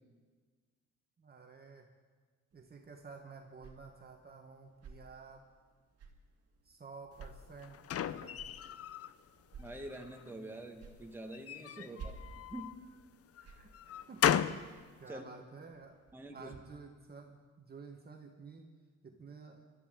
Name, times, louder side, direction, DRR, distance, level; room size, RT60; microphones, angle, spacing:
voice 1, 1.2-1.9 2.5-5.4 6.6-8.5 11.8-12.1 13.4-14.5 15.0-16.0 16.3-18.7 19.0-19.6, right 4 dB, 30° right, 2 dB, 1.4 m, -52 dB
sound 1, 2.5-16.6, right 4 dB, 55° right, 2.2 m, -56 dB
Closetdoor boom mono far, 7.2-9.1 9.6-10.3 11.3-12.8 13.4-14.7, left 9 dB, 50° left, 0.6 m, -35 dB
voice 2, 9.6-12.1 12.5-12.7 15.1-15.2 16.1-16.5, right 1 dB, 5° right, 2 dB, 1.8 m, -46 dB
21.5 x 13.0 x 3.8 m, 1.5 s
cardioid pair, 90°, 30 cm